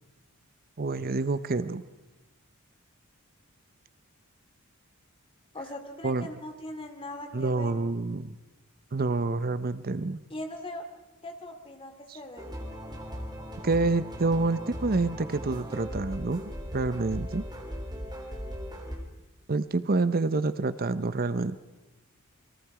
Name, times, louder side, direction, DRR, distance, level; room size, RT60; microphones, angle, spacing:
voice 1, 0.8-1.8 6.0-6.3 7.3-8.4 8.9-10.2 12.1-12.2 13.6-17.4 19.5-21.5, right 3 dB, 45° right, 13 dB, 0.7 m, -28 dB
voice 2, 5.5-7.7 10.3-10.8 11.2-12.6, left 1 dB, 25° left, 5 dB, 2.6 m, -40 dB
sound 1, 12.4-19.0, equal, 20° right, 3.7 m, -38 dB
29.0 x 22.0 x 4.9 m, 1.1 s
head